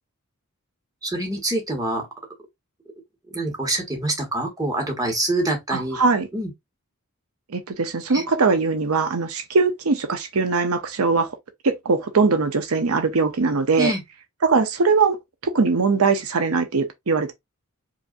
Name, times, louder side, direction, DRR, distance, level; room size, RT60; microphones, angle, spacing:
voice 1, 1.0-2.1 3.3-6.0 6.3-6.5 8.1-8.2 13.8-14.0, right 1 dB, 15° right, 1.2 m, -25 dB
voice 2, 5.7-6.3 7.5-11.3 11.6-13.9 14.4-15.2 15.4-17.3, right 4 dB, 75° right, 0.7 m, -21 dB
4.9 x 2.6 x 2.5 m
head